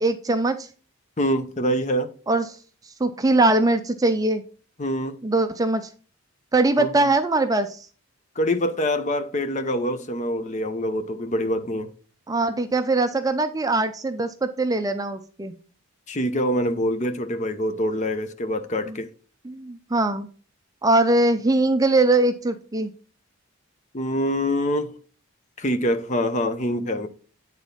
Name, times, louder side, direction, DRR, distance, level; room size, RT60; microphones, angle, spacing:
voice 1, 0.0-0.7 2.3-2.5 3.0-4.4 5.2-5.9 6.5-7.9 12.3-15.5 18.9-19.0 19.4-20.3 20.8-22.9, right 2 dB, 15° right, 0.4 m, -21 dB
voice 2, 1.2-2.1 4.8-5.2 6.8-7.1 8.4-11.9 16.1-19.1 23.9-24.9 25.6-27.1, equal, 35° left, 0.7 m, -25 dB
8.7 x 4.1 x 5.5 m
head